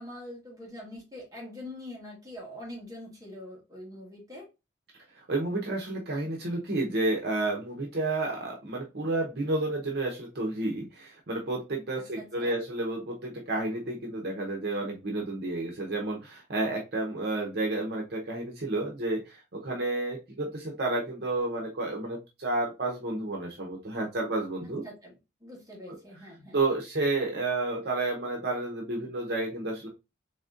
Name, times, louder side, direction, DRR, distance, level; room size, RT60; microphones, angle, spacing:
voice 1, 0.0-4.4 12.2-12.6 24.8-26.6, left 1 dB, 20° right, -2 dB, 1.4 m, -44 dB
voice 2, 5.1-24.8 26.5-29.9, right 2 dB, 60° right, 0 dB, 0.8 m, -31 dB
4.0 x 3.6 x 2.5 m, 0.26 s
head